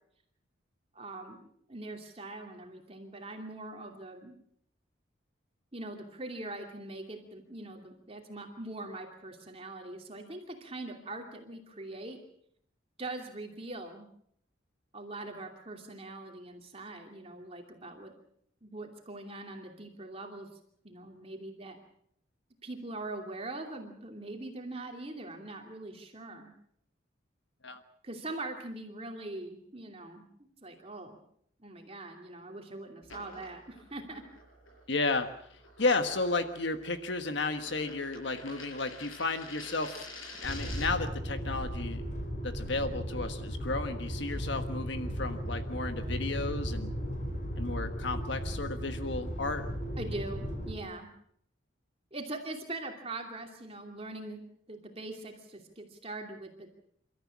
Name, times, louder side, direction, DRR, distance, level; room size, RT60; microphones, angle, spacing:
voice 1, 0.9-4.4 5.7-12.2 13.0-14.1 14.9-18.1 18.6-20.6 20.8-21.8 22.6-26.5 28.0-30.3 30.6-31.2 31.6-34.2 50.0-51.1 52.1-54.4 54.7-56.7, right 2 dB, 30° right, 3 dB, 2.7 m, -42 dB
sound 1, 33.0-41.1, left 2 dB, 85° left, 6.9 m, -48 dB
voice 2, 34.9-40.1 40.4-42.0 42.4-46.9 47.6-49.7, left 3 dB, 60° left, 8 dB, 1.4 m, -33 dB
sound 2, 40.4-50.7, equal, 40° left, 5.3 m, -36 dB
29.0 x 13.5 x 8.6 m, 0.69 s
head